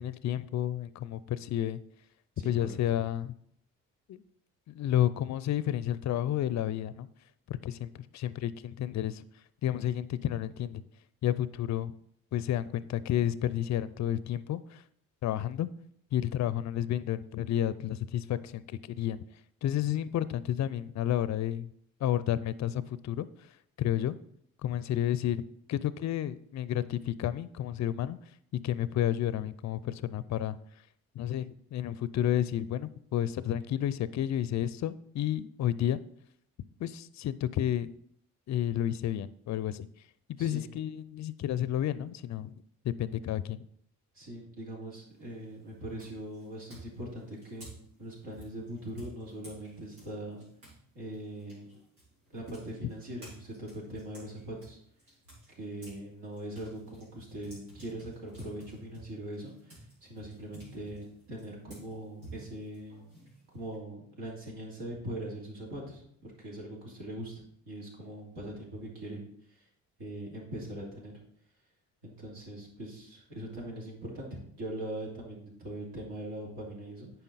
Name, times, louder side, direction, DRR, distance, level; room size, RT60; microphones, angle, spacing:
voice 1, 0.0-1.8 2.4-3.3 4.1-4.2 4.7-7.1 7.5-9.2 9.6-10.8 11.2-11.9 12.3-14.8 15.2-15.7 16.1-19.2 19.6-21.7 22.0-23.3 23.8-24.2 24.6-28.2 28.6-30.6 31.1-36.0 36.8-37.9 38.5-39.9 40.3-42.5 42.8-43.7 52.8-52.9, left 11 dB, 40° left, 17 dB, 0.5 m, -31 dB
voice 2, 2.4-2.7 40.4-40.6 44.1-50.4 50.9-51.7 52.3-54.8 55.5-63.1 63.5-69.6 70.0-71.1 72.0-77.1, right 1 dB, 65° right, -3 dB, 2.9 m, -41 dB
sound 1, 45.1-45.4 46.0-50.8 51.1-56.0 56.3-63.7, right 1 dB, 85° right, 3.2 m, -52 dB
9.0 x 5.6 x 4.1 m, 0.67 s
hypercardioid pair, 45°, 44 cm